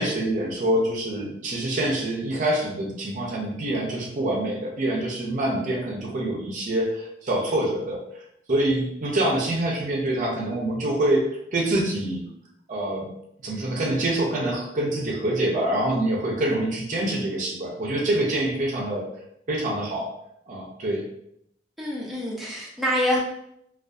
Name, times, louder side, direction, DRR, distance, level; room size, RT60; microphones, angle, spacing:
voice 1, 0.0-8.0 8.5-12.2 12.7-13.1 13.4-19.1 19.5-20.1 20.5-21.0, right 1 dB, 45° right, -1 dB, 0.5 m, -25 dB
voice 2, 21.8-23.2, equal, ahead, -7 dB, 0.5 m, -26 dB
2.5 x 2.3 x 2.3 m, 0.75 s
head